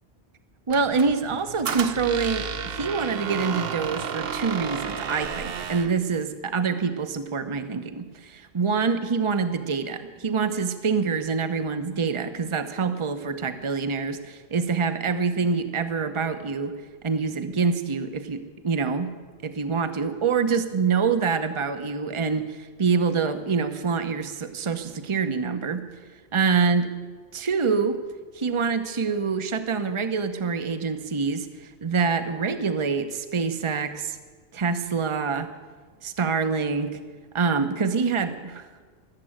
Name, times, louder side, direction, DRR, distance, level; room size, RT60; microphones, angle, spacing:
voice 1, 0.7-16.7 17.0-19.1 19.4-25.8 26.3-26.9 27.3-28.0 28.3-34.2 34.5-35.5 36.0-37.0 37.3-38.7, right 5 dB, 30° right, 9 dB, 0.8 m, -26 dB
Squeak, 0.7-6.0, right 6 dB, 65° right, 1.0 m, -32 dB
19.5 x 7.6 x 8.9 m, 1.5 s
omnidirectional pair, 1.1 m